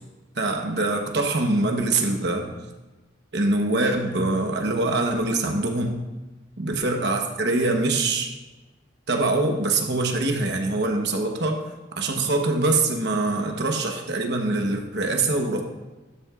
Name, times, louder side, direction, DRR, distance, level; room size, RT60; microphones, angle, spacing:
voice 1, 0.3-2.5 3.3-6.0 6.6-8.3 9.1-11.6 11.9-15.6, right 2 dB, 65° right, 3 dB, 1.1 m, -24 dB
12.5 x 8.5 x 2.5 m, 1.2 s
head